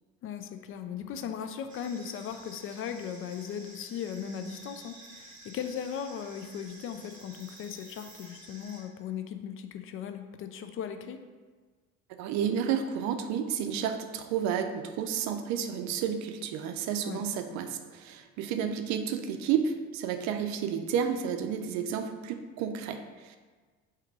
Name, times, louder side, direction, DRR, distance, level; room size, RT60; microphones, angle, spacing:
voice 1, 0.2-11.2 17.0-17.2, left 8 dB, 45° left, 8 dB, 0.4 m, -38 dB
sound 1, 1.7-8.8, right 2 dB, 25° right, 1.5 m, -51 dB
voice 2, 12.2-23.4, right 8 dB, 65° right, 7 dB, 0.5 m, -31 dB
3.5 x 2.9 x 4.6 m, 1.4 s
supercardioid pair, 85°, 30 cm